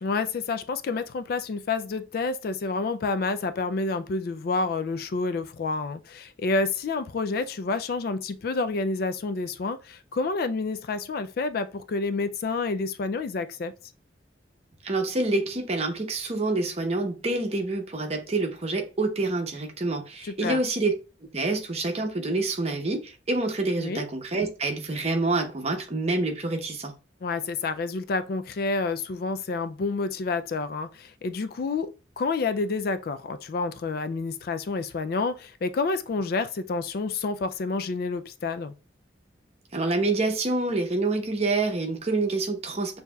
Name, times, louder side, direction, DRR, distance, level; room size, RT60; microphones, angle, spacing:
voice 1, 0.0-13.7 20.2-20.6 23.8-24.0 27.2-38.7, left 3 dB, 55° left, 0.3 m, -29 dB
voice 2, 14.8-21.0 21.3-26.9 39.7-43.0, right 2 dB, 35° right, 0.8 m, -27 dB
6.5 x 2.7 x 2.3 m
head